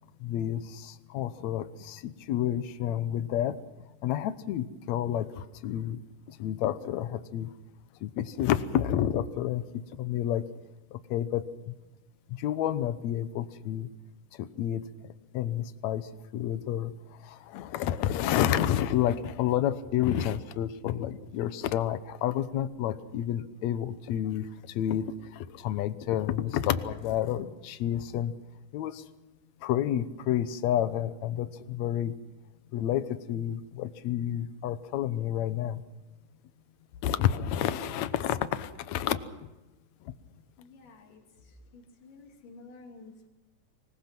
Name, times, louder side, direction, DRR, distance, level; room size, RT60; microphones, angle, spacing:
voice 1, 0.2-3.6 4.0-6.0 6.3-7.5 8.0-10.5 10.9-11.4 12.4-13.9 14.4-14.8 15.3-16.1 16.3-16.9 17.2-24.5 24.8-28.3 28.7-29.0 29.6-32.1 32.7-35.8 37.0-39.2, left 11 dB, 70° left, 13 dB, 2.1 m, -30 dB
voice 2, 40.6-43.3, left 3 dB, 90° left, 1 dB, 4.2 m, -52 dB
25.0 x 21.0 x 6.1 m, 1.1 s
omnidirectional pair, 3.6 m